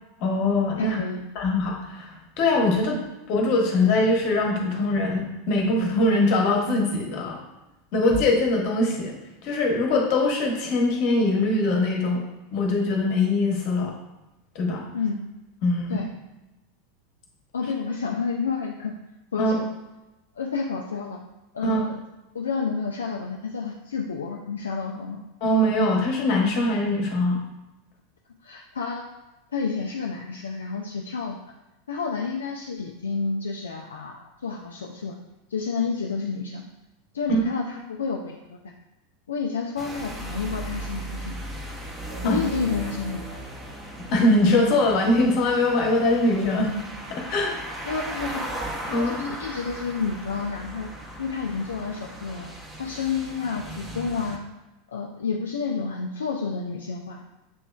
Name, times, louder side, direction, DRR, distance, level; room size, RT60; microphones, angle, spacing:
voice 1, 0.2-1.0 1.3-3.0 3.3-7.4 7.9-9.2 9.4-12.2 12.5-13.9 14.5-14.8 15.6-16.1 19.4-19.5 21.6-21.8 25.4-27.4 37.3-37.5 42.2-42.4 44.1-46.7 47.1-47.5 48.9-49.2, left 2 dB, 50° left, 0 dB, 1.0 m, -22 dB
voice 2, 0.8-1.3 2.7-2.8 14.9-15.2 15.9-16.1 17.5-18.9 19.3-19.7 20.4-21.2 21.5-22.0 22.3-25.2 28.4-29.1 29.5-31.4 31.9-35.2 35.5-36.6 37.1-38.7 39.3-41.4 42.2-43.4 47.8-48.4 48.8-50.9 51.2-52.5 52.8-54.4 54.9-57.2, left 5 dB, 75° left, 1 dB, 0.3 m, -30 dB
sound 1, 39.8-54.4, right 1 dB, 10° right, 0.7 m, -37 dB
6.8 x 3.0 x 2.2 m, 1.0 s
figure-of-eight pair, 85°, 0 cm